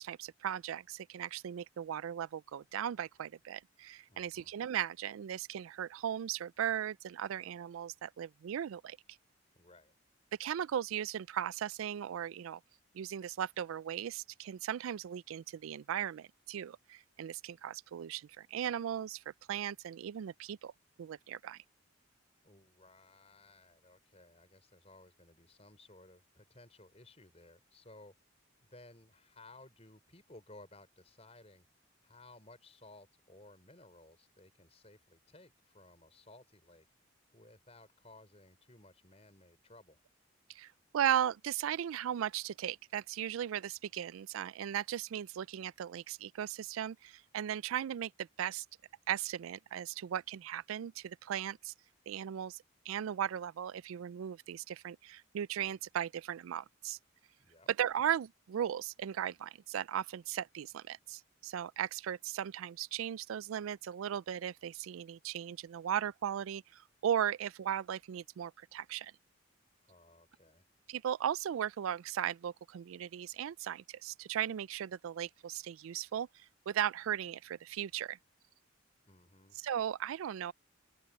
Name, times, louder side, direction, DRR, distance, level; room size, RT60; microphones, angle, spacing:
voice 1, 0.0-9.0 10.4-12.6 12.9-19.2 19.5-20.7 21.0-21.6 40.5-48.7 49.1-51.7 52.1-57.0 57.8-69.1 70.9-78.2 79.6-80.5, right 9 dB, 85° right, 0.3 m, -37 dB
voice 2, 4.1-4.5 9.5-9.9 22.4-28.1 28.7-31.7 32.0-36.9 37.3-40.0 57.4-57.7 69.8-70.7 79.0-79.6, left 2 dB, 30° left, 5.6 m, -58 dB
head